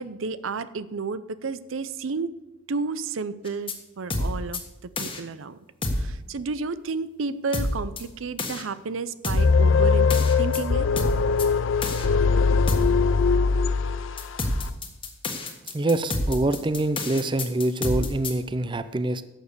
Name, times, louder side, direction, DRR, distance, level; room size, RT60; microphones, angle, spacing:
voice 1, 0.0-2.3 2.7-5.6 5.9-10.9, right 4 dB, 80° right, 15 dB, 0.6 m, -32 dB
sound 1, 3.5-3.7 4.1-4.6 5.0-5.2 5.8-6.1 7.5-8.0 8.4-8.6 9.2-9.6 10.1-10.6 11.0-11.4 11.8-12.1 12.7-13.0 14.2-18.3, left 1 dB, 25° left, 1.5 m, -28 dB
sound 2, 9.4-14.4, left 4 dB, 70° left, 0.6 m, -21 dB
voice 2, 15.7-19.2, right 2 dB, 25° right, 13 dB, 0.5 m, -25 dB
11.5 x 7.2 x 6.7 m, 1.0 s
head